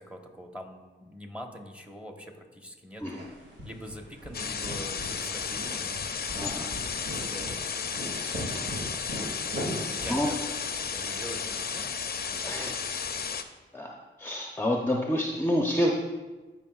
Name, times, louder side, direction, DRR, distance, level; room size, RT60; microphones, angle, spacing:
voice 1, 0.0-3.2 3.6-6.0 6.3-7.8 8.1-8.8 9.4-10.4 10.9-11.9 12.3-12.8, equal, 5° right, 3 dB, 1.1 m, -44 dB
sound 1, 3.1-11.2, equal, 65° right, 2.2 m, -40 dB
sound 2, 4.3-13.4, left 6 dB, 50° left, 0.5 m, -33 dB
voice 2, 6.4-6.7 10.1-10.3 12.5-12.7 13.7-13.9 14.2-15.9, left 1 dB, 10° left, 0 dB, 0.7 m, -28 dB
14.0 x 5.3 x 2.4 m, 1.2 s
cardioid pair, 65°, 20 cm